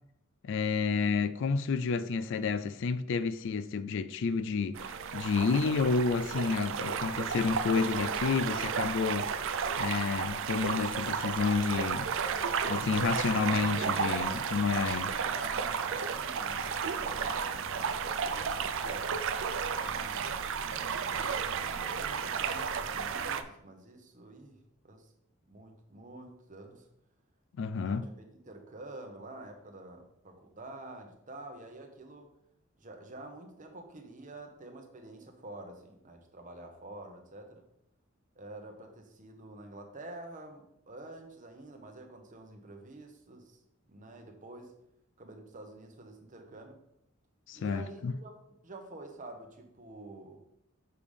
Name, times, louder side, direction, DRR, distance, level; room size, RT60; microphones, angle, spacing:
voice 1, 0.4-4.8 5.1-9.3 9.8-12.1 12.7-15.1 27.6-28.0 47.5-48.1, left 5 dB, 65° left, 0.3 m, -30 dB
sound 1, 4.8-23.4, right 6 dB, 65° right, 0.5 m, -33 dB
voice 2, 14.9-20.4 21.3-24.6 24.8-25.1 25.5-26.9 27.9-28.1 28.4-32.3 32.8-37.6 38.3-43.6 43.9-44.8 45.2-46.8 47.5-48.3 48.6-50.4, right 2 dB, 40° right, 1.0 m, -48 dB
6.8 x 3.3 x 5.3 m
head